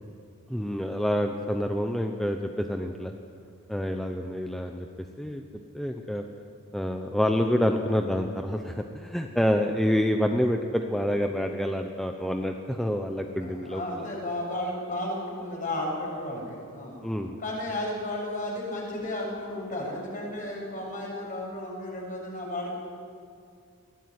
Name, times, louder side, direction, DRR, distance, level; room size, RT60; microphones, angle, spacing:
voice 1, 0.5-3.1 3.7-4.9 5.2-5.4 5.7-6.2 6.7-14.0 17.0-17.4, equal, ahead, 4 dB, 0.9 m, -27 dB
voice 2, 13.4-17.0 17.4-22.7, left 1 dB, 35° left, -2 dB, 7.5 m, -33 dB
22.5 x 17.5 x 9.6 m, 2.4 s
head